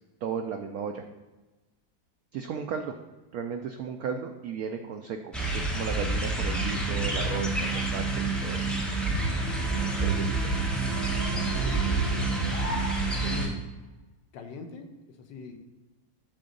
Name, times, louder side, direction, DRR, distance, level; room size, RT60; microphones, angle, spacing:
voice 1, 0.2-1.0 2.3-2.9 3.3-8.7 10.0-10.6 11.5-12.1, right 6 dB, 80° right, 5 dB, 0.8 m, -35 dB
sound 1, 5.3-13.5, right 2 dB, ahead, 0.5 m, -29 dB
sound 2, 6.6-13.4, right 6 dB, 50° right, 1.2 m, -33 dB
sound 3, 9.2-13.7, left 1 dB, 45° left, 2.6 m, -43 dB
voice 2, 13.2-13.6 14.3-15.6, left 4 dB, 70° left, 5 dB, 1.4 m, -41 dB
7.8 x 3.7 x 6.5 m, 1.1 s
omnidirectional pair, 2.1 m